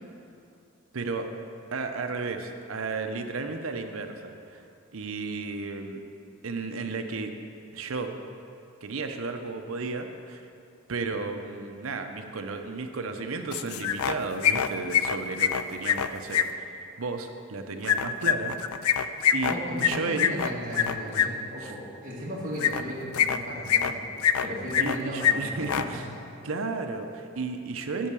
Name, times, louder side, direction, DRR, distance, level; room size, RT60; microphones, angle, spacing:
voice 1, 0.9-1.3 1.7-4.6 4.9-6.0 6.4-7.3 7.7-8.2 8.8-10.5 10.9-16.7 17.0-18.6 19.3-19.5 19.8-20.3 21.6-21.7 24.8-26.1 26.4-28.1, right 3 dB, 75° right, 6 dB, 0.7 m, -33 dB
sound 1, 13.5-14.2 14.4-16.4 17.8-21.3 22.6-22.8 23.1-23.9 24.2-25.0 25.2-25.3 25.6-25.8, left 9 dB, 85° left, 0.4 m, -24 dB
voice 2, 19.2-24.0 24.4-26.0, equal, 40° right, -8 dB, 1.6 m, -36 dB
10.5 x 4.6 x 6.9 m, 2.6 s
head